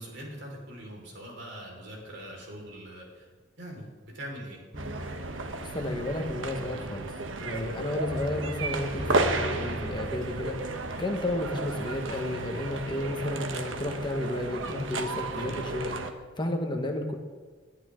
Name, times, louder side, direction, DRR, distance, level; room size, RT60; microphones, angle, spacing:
voice 1, 0.0-3.3 3.6-4.6 7.5-7.7 15.3-15.6, equal, 60° right, -1 dB, 4.9 m, -42 dB
sound 1, 4.7-11.4 11.9-12.2, equal, 40° right, 4.1 m, -40 dB
sound 2, 4.8-16.1, right 2 dB, 80° right, 1.2 m, -33 dB
voice 2, 5.6-7.1 7.4-17.2, left 1 dB, 25° left, 3 dB, 1.4 m, -32 dB
22.0 x 12.0 x 3.8 m, 1.5 s
head